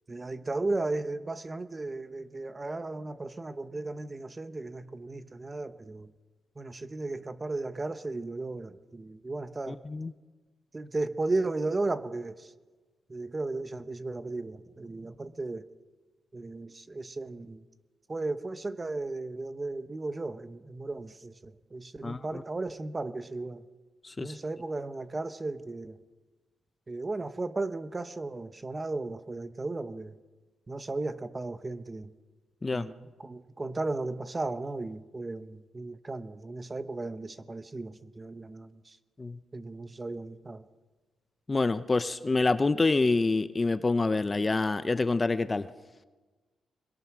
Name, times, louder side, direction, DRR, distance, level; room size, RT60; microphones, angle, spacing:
voice 1, 0.1-6.1 6.6-9.8 10.7-12.3 13.1-15.6 16.3-17.6 18.1-23.6 24.2-25.9 26.9-30.1 30.7-32.1 32.7-38.7 39.5-40.6, right 2 dB, 25° right, 11 dB, 1.0 m, -35 dB
voice 2, 9.7-10.1 22.0-22.4 24.0-24.3 32.6-32.9 39.2-39.4 41.5-45.7, left 3 dB, 25° left, 12 dB, 0.7 m, -27 dB
24.5 x 21.5 x 6.2 m, 1.3 s
cardioid pair, 105°, 0 cm